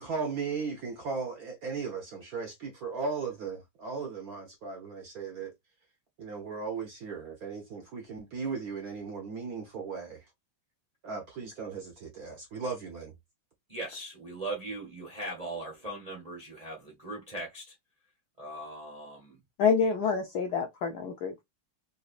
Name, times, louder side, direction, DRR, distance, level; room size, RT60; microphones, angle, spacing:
voice 1, 0.0-5.5 6.2-10.2 11.0-13.1, right 5 dB, 65° right, 0.9 m, -36 dB
voice 2, 13.7-17.7 18.4-19.4 19.8-19.9, right 1 dB, 40° right, 0.5 m, -39 dB
voice 3, 19.6-21.4, left 5 dB, 75° left, 0.9 m, -27 dB
4.0 x 2.6 x 2.4 m
omnidirectional pair, 2.3 m